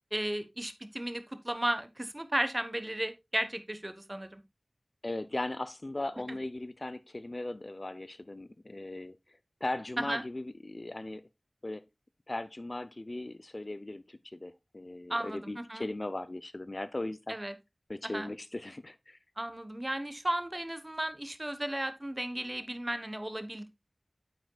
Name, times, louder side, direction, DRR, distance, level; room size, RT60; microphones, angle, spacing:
voice 1, 0.1-4.4 10.1-10.2 15.1-15.9 17.3-17.6 18.0-18.3 19.4-23.7, right 1 dB, 25° right, 1.1 m, -34 dB
voice 2, 5.0-9.2 9.6-11.3 11.6-11.8 12.3-17.4 17.9-19.2, left 2 dB, 45° left, 0.6 m, -38 dB
9.3 x 7.9 x 2.3 m
wide cardioid pair, 60°, 0 cm